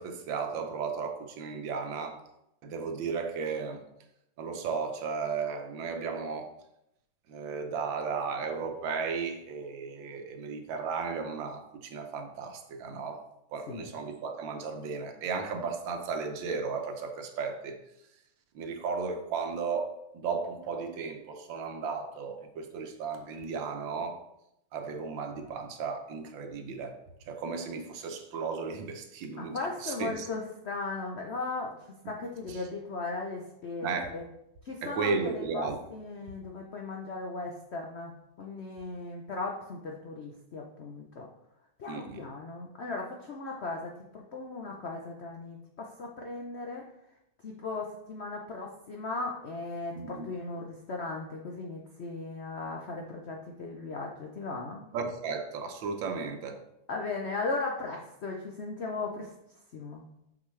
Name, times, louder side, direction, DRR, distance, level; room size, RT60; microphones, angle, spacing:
voice 1, 0.0-2.2 2.6-3.8 4.4-6.6 7.3-13.2 13.5-17.8 18.5-24.2 24.7-27.0 27.3-30.3 32.5-32.7 33.8-34.2 34.8-35.8 41.9-42.2 50.0-50.3 54.9-56.6, right 5 dB, 80° right, 5 dB, 1.5 m, -35 dB
voice 2, 29.4-31.7 32.0-34.2 34.6-38.1 38.4-41.2 41.8-43.9 44.3-46.8 47.4-54.9 56.9-59.3 59.7-60.0, left 3 dB, 75° left, 1 dB, 0.6 m, -37 dB
6.3 x 6.1 x 3.2 m, 0.82 s
omnidirectional pair, 2.1 m